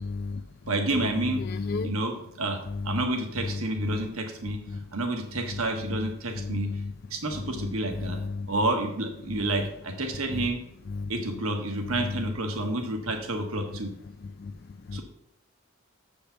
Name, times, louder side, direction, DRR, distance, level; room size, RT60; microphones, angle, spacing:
voice 1, 0.1-0.4 1.5-1.9 3.9-4.0 4.7-4.8 6.5-6.8 8.4-8.5 14.4-14.5 14.9-15.0, left 4 dB, 45° left, 7 dB, 0.4 m, -32 dB
voice 2, 0.7-1.4 1.8-4.6 4.9-6.7 7.1-8.2 8.5-10.6 11.1-13.9 14.9-15.0, right 2 dB, 85° right, 4 dB, 1.4 m, -29 dB
7.1 x 5.2 x 6.9 m, 0.75 s
head